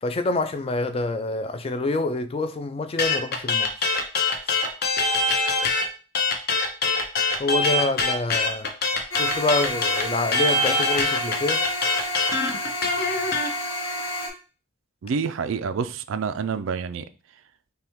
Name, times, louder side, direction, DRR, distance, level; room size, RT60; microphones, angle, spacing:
voice 1, 0.0-3.9 4.5-4.6 7.4-8.7 9.1-11.6, left 2 dB, 30° left, 0.4 m, -26 dB
sound 1, 3.0-5.9 6.1-13.5, left 3 dB, 50° left, 0.8 m, -23 dB
sound 2, 9.1-14.3, left 1 dB, 70° left, 1.3 m, -30 dB
voice 2, 15.0-17.0, right 5 dB, 85° right, 0.4 m, -27 dB
5.6 x 2.3 x 3.5 m
head